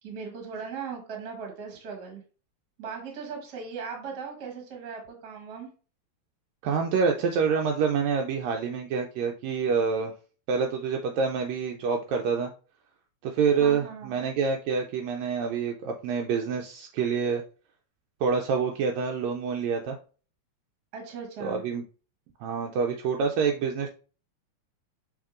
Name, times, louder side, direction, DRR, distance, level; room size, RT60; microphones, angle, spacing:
voice 1, 0.0-2.2 2.8-5.7 13.6-14.1 20.9-21.6, right 6 dB, 50° right, 2 dB, 1.3 m, -38 dB
voice 2, 6.6-10.1 10.5-12.5 13.2-17.4 18.2-20.0 21.4-21.8 22.4-23.9, right 5 dB, 80° right, 3 dB, 1.7 m, -27 dB
6.3 x 3.3 x 2.5 m, 0.37 s
omnidirectional pair, 3.4 m